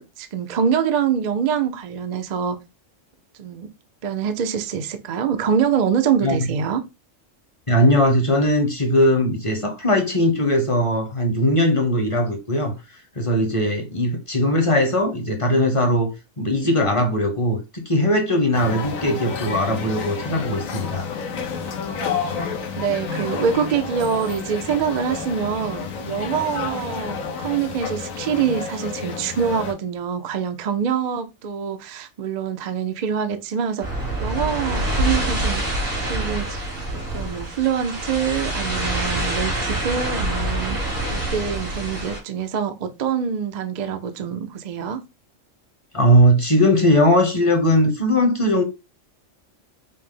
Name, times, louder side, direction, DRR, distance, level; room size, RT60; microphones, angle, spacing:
voice 1, 0.0-2.6 3.3-3.7 4.0-6.8 22.8-33.9 34.2-35.6 36.0-36.7 37.1-45.0, right 7 dB, 55° right, 0.5 m, -25 dB
voice 2, 7.7-21.1 45.9-48.6, equal, 30° left, 0.7 m, -19 dB
sound 1, 18.5-29.7, left 5 dB, 80° left, 1.2 m, -30 dB
sound 2, 33.8-42.2, right 1 dB, 90° right, 2.7 m, -26 dB
5.3 x 2.0 x 3.7 m
omnidirectional pair, 1.4 m